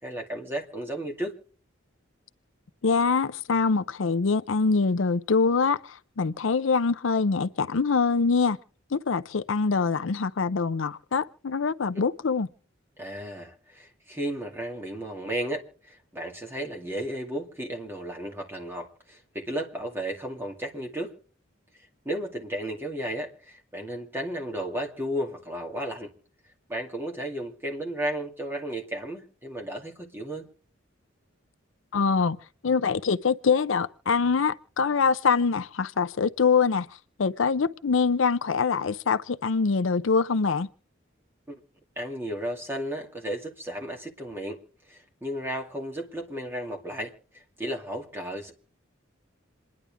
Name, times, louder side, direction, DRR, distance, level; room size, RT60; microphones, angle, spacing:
voice 1, 0.0-1.3 13.0-21.1 22.0-26.1 26.7-30.5 41.5-41.6 42.0-44.6 44.9-48.5, right 1 dB, 10° right, 2.4 m, -34 dB
voice 2, 2.8-8.6 8.9-12.5 31.9-32.4 32.6-36.9 37.2-40.7, left 5 dB, 75° left, 0.6 m, -24 dB
27.5 x 10.5 x 3.6 m
head